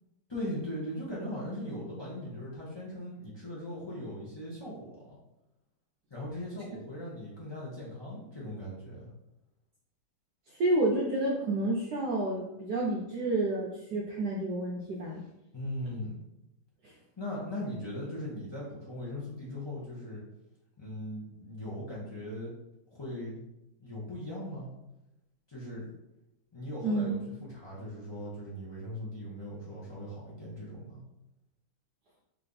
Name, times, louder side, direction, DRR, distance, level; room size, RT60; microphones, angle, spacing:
voice 1, 0.3-5.2 6.1-9.1 15.5-16.1 17.2-20.2 20.8-22.5 22.9-23.4 23.8-24.7 25.5-25.9 26.5-31.0, left 1 dB, 45° left, -7 dB, 0.3 m, -39 dB
voice 2, 10.5-15.2 16.8-16.9 26.8-27.2, right 2 dB, 75° right, -2 dB, 0.9 m, -30 dB
3.5 x 3.2 x 3.9 m, 0.91 s
omnidirectional pair, 2.3 m